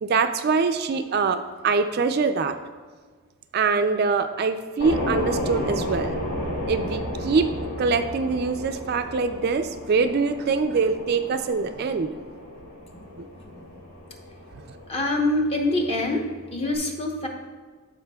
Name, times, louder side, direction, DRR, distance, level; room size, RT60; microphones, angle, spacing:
voice 1, 0.0-2.6 3.5-6.2 6.7-7.5 7.8-12.2 13.2-13.3, right 4 dB, 45° right, 8 dB, 0.3 m, -24 dB
sound 1, 4.8-16.8, equal, 90° left, 2.1 m, -33 dB
voice 2, 14.9-16.2 16.5-17.3, left 2 dB, 25° left, 1 dB, 0.9 m, -25 dB
14.0 x 4.9 x 2.3 m, 1.5 s
head